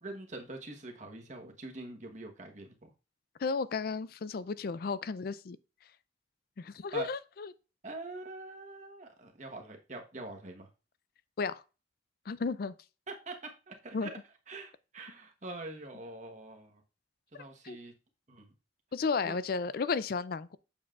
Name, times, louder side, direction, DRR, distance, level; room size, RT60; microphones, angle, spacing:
voice 1, 0.0-2.9 6.9-7.1 7.8-10.7 13.1-14.2 14.5-16.8 17.3-17.9 18.3-18.5 19.2-19.4, right 2 dB, 40° right, 1.2 m, -44 dB
voice 2, 3.4-5.6 6.6-7.5 11.4-11.6 12.3-12.7 13.9-14.1 17.6-17.8 18.9-20.6, left 4 dB, 55° left, 0.4 m, -33 dB
7.2 x 7.2 x 2.4 m
head